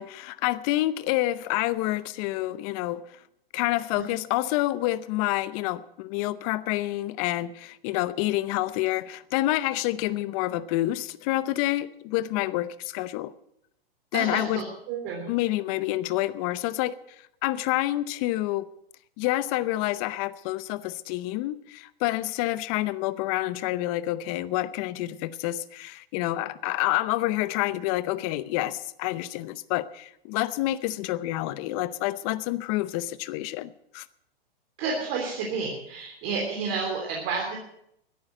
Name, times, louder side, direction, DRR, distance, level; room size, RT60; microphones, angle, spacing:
voice 1, 0.0-3.2 3.5-13.3 14.1-14.6 15.3-17.0 17.4-18.7 19.2-34.1, left 16 dB, 35° left, 17 dB, 0.7 m, -28 dB
voice 2, 14.1-15.3 34.8-37.6, right 4 dB, 40° right, -1 dB, 3.4 m, -30 dB
14.0 x 10.5 x 7.8 m, 0.75 s
hypercardioid pair, 130°, 30 cm